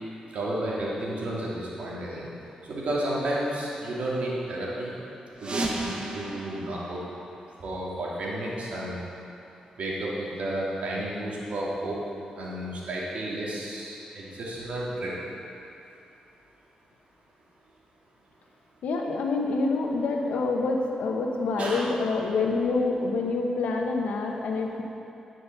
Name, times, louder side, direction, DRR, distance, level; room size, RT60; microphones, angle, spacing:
voice 1, 0.3-2.3 2.6-4.9 5.4-7.0 7.6-9.0 9.8-12.0 12.4-15.2 21.6-21.9, right 1 dB, 70° right, -6 dB, 2.8 m, -32 dB
sound 1, 5.4-8.0, right 2 dB, 45° right, 1.3 m, -35 dB
voice 2, 18.8-24.8, left 3 dB, 85° left, 1 dB, 1.1 m, -27 dB
10.5 x 6.3 x 6.8 m, 2.7 s
cardioid pair, 70°, 2 cm